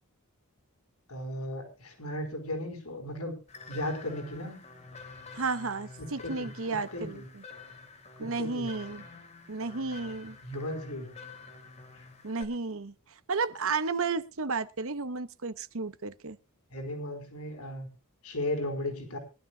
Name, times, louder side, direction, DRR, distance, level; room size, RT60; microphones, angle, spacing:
voice 1, 1.1-3.3 3.7-4.5 6.0-7.3 8.2-8.7 10.4-11.1 11.9-12.1 16.7-17.9 18.2-19.2, left 1 dB, 80° left, 4.7 m, -36 dB
sound 1, 3.5-12.4, left 4 dB, 30° left, 3.0 m, -48 dB
voice 2, 5.3-7.2 8.2-9.1 9.5-10.4 12.2-12.9 13.3-16.4, right 4 dB, 65° right, 1.0 m, -32 dB
23.5 x 12.0 x 2.4 m
head